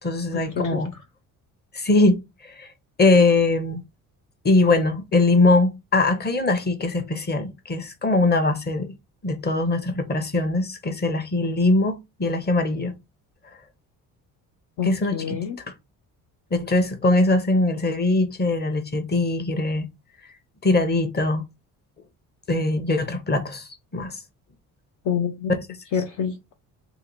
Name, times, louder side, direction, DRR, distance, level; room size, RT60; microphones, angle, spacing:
voice 1, 0.0-0.9 1.7-2.7 3.0-3.8 4.4-8.9 9.2-12.9 14.8-15.6 16.5-19.9 20.6-21.4 22.5-24.2, left 2 dB, 25° left, 0.9 m, -21 dB
voice 2, 14.8-15.6 25.1-25.5 25.9-26.6, left 7 dB, 45° left, 0.6 m, -27 dB
2.7 x 2.2 x 4.0 m
hypercardioid pair, 55°, 43 cm